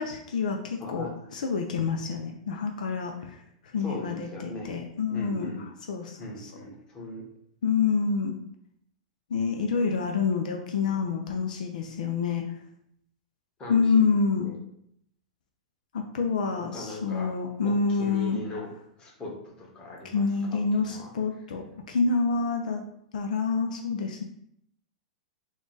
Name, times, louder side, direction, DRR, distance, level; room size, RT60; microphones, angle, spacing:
voice 1, 0.0-1.1 1.3-3.4 3.7-5.5 5.9-6.2 7.6-8.4 9.3-12.4 13.7-14.5 15.9-18.4 20.1-22.8 23.1-24.2, left 5 dB, 80° left, 3 dB, 0.5 m, -27 dB
voice 2, 0.8-1.2 3.8-4.7 5.1-5.7 6.2-7.3 13.6-14.0 14.3-14.6 16.7-17.3 17.6-18.7 19.0-21.1, left 2 dB, 25° left, -3 dB, 1.3 m, -40 dB
3.7 x 2.4 x 3.8 m, 0.71 s
hypercardioid pair, 120°, 4 cm